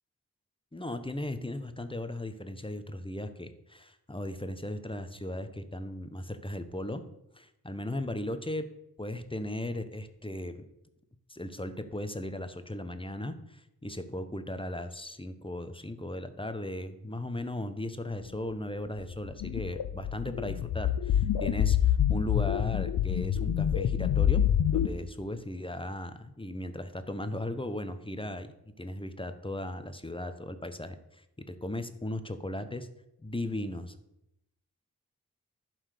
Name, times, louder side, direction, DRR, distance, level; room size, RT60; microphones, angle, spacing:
voice 1, 0.7-7.0 7.3-8.7 9.0-10.6 11.3-24.4 24.7-28.5 28.8-31.2 31.6-32.9 33.2-33.9, left 1 dB, 15° left, 9 dB, 1.1 m, -37 dB
sound 1, 19.1-24.9, left 10 dB, 85° left, 0.6 m, -27 dB
11.5 x 4.5 x 6.7 m, 0.85 s
cardioid pair, 45°, 37 cm